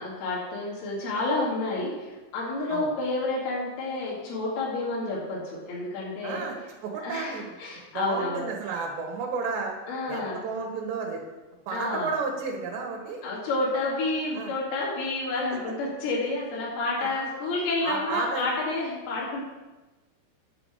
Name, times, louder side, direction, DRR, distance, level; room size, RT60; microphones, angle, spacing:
voice 1, 0.0-6.4 7.0-8.5 9.9-10.4 11.7-12.1 13.2-19.4, left 2 dB, 70° left, -6 dB, 4.2 m, -30 dB
voice 2, 6.2-6.6 6.8-7.6 7.9-9.8 10.1-11.2 11.7-13.2 14.4-14.5 15.5-15.6 17.0-17.3 17.8-18.5, right 4 dB, 90° right, -1 dB, 3.8 m, -32 dB
9.7 x 6.9 x 7.4 m, 1.1 s
omnidirectional pair, 4.8 m